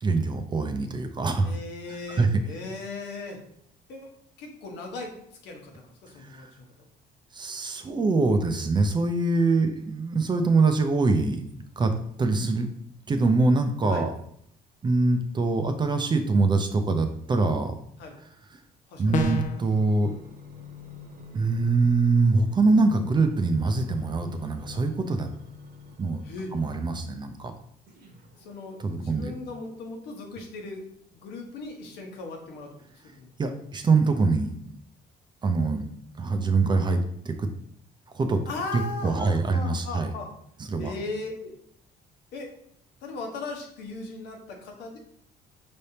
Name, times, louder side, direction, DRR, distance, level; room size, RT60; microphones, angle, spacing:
voice 1, 0.0-1.5 1.9-2.3 7.3-11.5 11.8-11.9 12.2-12.7 13.1-14.1 14.8-17.7 19.0-20.1 21.3-25.3 26.0-26.2 26.5-27.5 28.8-29.3 33.4-34.5 35.4-35.9 36.2-37.5 38.1-38.4 39.0-40.1 40.7-40.9, right 3 dB, 25° right, 7 dB, 0.5 m, -24 dB
voice 2, 1.4-3.4 3.9-4.1 4.4-5.1 5.4-6.5 13.9-14.1 18.0-18.1 18.9-19.2 26.2-26.5 28.4-30.8 31.1-32.7 33.2-33.3 38.5-40.3 40.8-41.5 42.3-42.5 43.0-45.0, left 3 dB, 80° left, 2 dB, 1.1 m, -37 dB
sound 1, 19.1-19.7, left 2 dB, 45° left, 0.5 m, -27 dB
sound 2, 19.3-27.3 27.9-29.1 29.8-29.9, left 5 dB, 65° right, 1.2 m, -46 dB
5.2 x 3.4 x 2.8 m, 0.69 s
cardioid pair, 110°, 17 cm